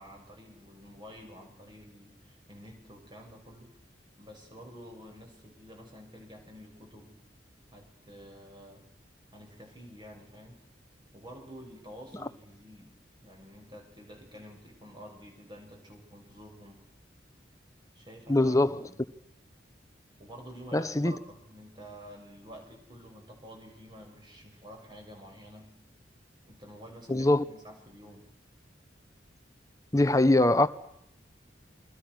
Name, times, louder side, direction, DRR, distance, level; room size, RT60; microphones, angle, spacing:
voice 1, 0.0-3.8 4.2-7.2 7.7-8.9 9.3-10.6 11.1-12.9 13.2-16.9 17.9-18.5 18.8-19.0 20.2-25.7 26.5-28.3, equal, 25° right, 6.8 m, -49 dB
voice 2, 18.3-18.9 20.7-21.2 27.1-27.4 29.9-30.7, left 1 dB, 20° left, 1.1 m, -22 dB
29.0 x 23.0 x 6.4 m
head